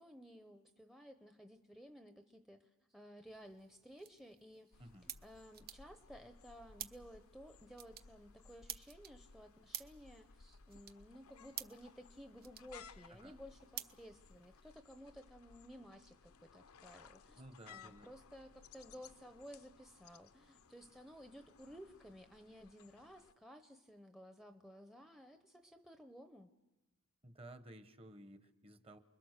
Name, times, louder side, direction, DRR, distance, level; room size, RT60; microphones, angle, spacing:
voice 1, 0.0-4.8 5.2-17.4 17.7-26.5, equal, ahead, 7 dB, 0.8 m, -56 dB
sound 1, 3.3-14.8, right 11 dB, 45° right, 0.8 m, -53 dB
sound 2, 4.7-23.3, left 5 dB, 70° left, 0.7 m, -61 dB
voice 2, 17.4-18.1 27.2-29.0, right 1 dB, 25° right, 10 dB, 1.1 m, -55 dB
29.5 x 22.0 x 6.6 m, 1.0 s
head